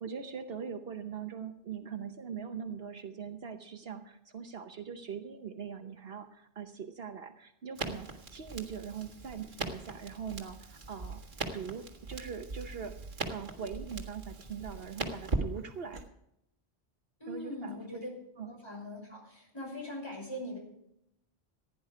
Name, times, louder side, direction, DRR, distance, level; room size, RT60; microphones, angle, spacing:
voice 1, 0.0-11.2 11.5-12.9 13.3-16.0 17.3-18.0 18.4-18.5, right 7 dB, 65° right, 7 dB, 1.1 m, -41 dB
Crackle, 7.7-16.0, right 3 dB, 50° right, 1.9 m, -40 dB
voice 2, 17.2-18.1 18.4-20.6, left 1 dB, 25° left, -2 dB, 5.6 m, -41 dB
15.5 x 10.5 x 4.9 m, 0.78 s
omnidirectional pair, 1.1 m